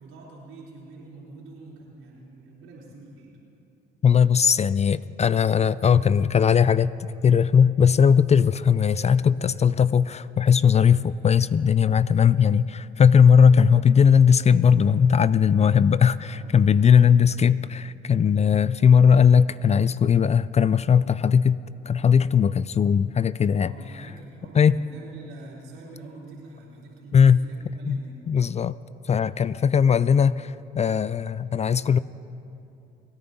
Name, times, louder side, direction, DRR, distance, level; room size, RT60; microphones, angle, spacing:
voice 1, 0.0-3.3 16.3-16.6 23.5-28.2, right 2 dB, 75° right, -4 dB, 3.7 m, -45 dB
voice 2, 4.0-6.9 7.2-21.6 21.9-24.1 24.6-24.8 27.1-27.4 27.9-28.0 28.3-28.8 29.1-32.0, left 7 dB, 30° left, 18 dB, 0.4 m, -19 dB
26.0 x 9.9 x 4.0 m, 2.8 s
supercardioid pair, 60°, 21 cm